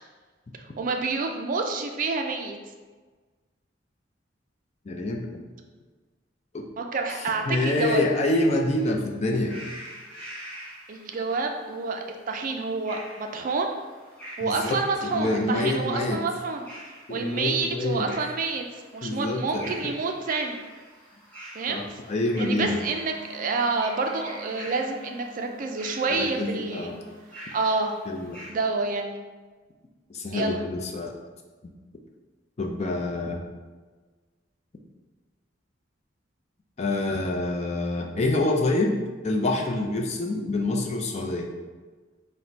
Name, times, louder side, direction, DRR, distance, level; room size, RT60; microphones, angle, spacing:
voice 1, 0.8-2.6 6.8-8.0 10.9-13.7 14.4-16.6 17.1-18.7 18.9-20.6 21.5-21.8 22.4-27.0 27.5-27.9 28.5-29.2 30.3-30.6, right 4 dB, 45° right, 4 dB, 0.4 m, -28 dB
voice 2, 4.9-5.4 6.5-6.7 7.4-9.6 14.4-16.2 17.1-18.1 19.0-19.7 21.7-22.8 26.1-26.9 28.1-28.4 30.1-31.1 32.6-33.4 36.8-39.0 39.2-41.5, left 2 dB, 35° left, 1 dB, 0.5 m, -26 dB
sound 1, 9.3-28.5, right 1 dB, 10° left, 0.9 m, -45 dB
Wind instrument woodwind instrument, 22.5-27.2, left 2 dB, 25° right, 0.8 m, -48 dB
4.0 x 2.1 x 4.4 m, 1.4 s
head